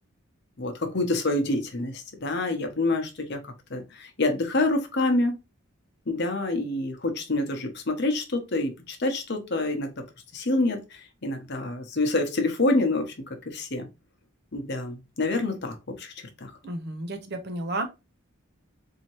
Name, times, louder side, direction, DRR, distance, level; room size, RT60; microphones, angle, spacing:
voice 1, 0.6-5.3 6.1-9.9 10.3-13.1 13.5-13.9 14.5-16.1 16.4-16.5, left 2 dB, 55° left, 0.9 m, -27 dB
voice 2, 16.6-17.9, right 2 dB, 50° right, 0.7 m, -32 dB
4.3 x 2.8 x 3.0 m
head